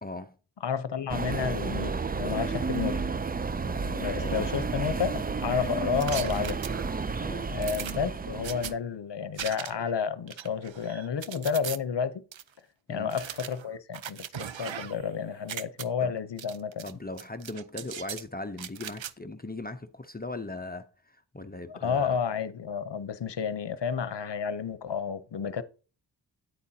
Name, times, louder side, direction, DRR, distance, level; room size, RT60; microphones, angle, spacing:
voice 1, 0.0-0.3 2.5-2.6 3.7-4.5 7.2-7.6 12.9-13.1 16.0-16.1 16.8-22.2, left 2 dB, 20° left, 0.7 m, -39 dB
voice 2, 0.6-3.0 4.0-6.6 7.5-12.2 12.9-16.8 21.7-25.6, left 6 dB, 65° left, 0.8 m, -31 dB
sound 1, 1.1-8.7, right 4 dB, 20° right, 0.3 m, -31 dB
sound 2, 6.0-7.1 7.6-8.7 9.4-9.9 10.3-11.8 12.3-12.4 13.1-15.1 15.4-15.8 16.4-16.9 17.2-18.2 18.6-19.1, right 9 dB, 75° right, 0.6 m, -39 dB
9.4 x 8.7 x 2.8 m
wide cardioid pair, 85°, 46 cm